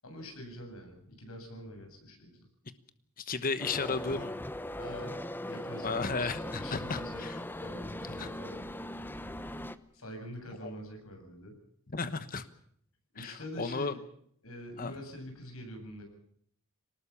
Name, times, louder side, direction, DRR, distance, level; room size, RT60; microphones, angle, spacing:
voice 1, 0.0-2.5 4.8-7.2 7.5-8.6 9.9-11.6 13.1-14.0 14.4-16.0, equal, 70° left, 4 dB, 8.0 m, -45 dB
voice 2, 3.2-4.4 5.8-7.4 8.2-8.3 10.6-10.7 11.9-12.4 13.2-13.9 14.8-14.9, left 4 dB, 40° left, 12 dB, 1.2 m, -34 dB
sound 1, 3.6-9.8, left 1 dB, 10° left, 0.8 m, -39 dB
23.5 x 19.5 x 7.3 m, 0.65 s
head